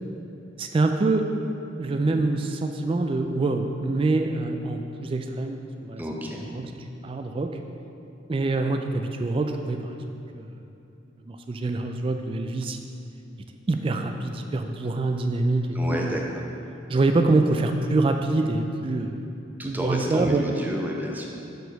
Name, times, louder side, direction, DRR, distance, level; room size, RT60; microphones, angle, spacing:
voice 1, 0.6-1.3 1.8-6.0 6.5-7.5 8.3-10.0 10.3-10.5 11.3-12.8 13.7-16.2 16.9-19.2 19.6-20.4, right 2 dB, 30° right, 5 dB, 0.3 m, -25 dB
voice 2, 6.0-6.4 15.7-16.5 19.6-21.3, equal, 10° right, -1 dB, 0.7 m, -30 dB
6.3 x 4.5 x 5.2 m, 2.8 s
head